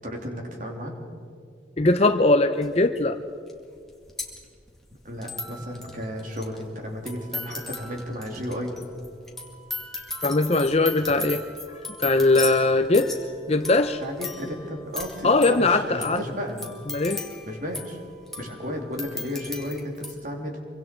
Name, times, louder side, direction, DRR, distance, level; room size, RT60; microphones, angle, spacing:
voice 1, 0.0-1.0 5.0-8.8 14.0-16.7 17.4-18.0 18.4-20.6, equal, 45° right, 1 dB, 3.1 m, -33 dB
voice 2, 1.8-3.2 10.2-11.4 12.0-13.1 13.5-14.0 15.2-16.2 16.9-17.2, left 2 dB, 35° left, 8 dB, 0.6 m, -20 dB
sound 1, 2.6-2.7 3.5-3.6 3.8-20.1, left 3 dB, ahead, 2.3 m, -37 dB
26.5 x 24.0 x 4.6 m, 2.3 s
head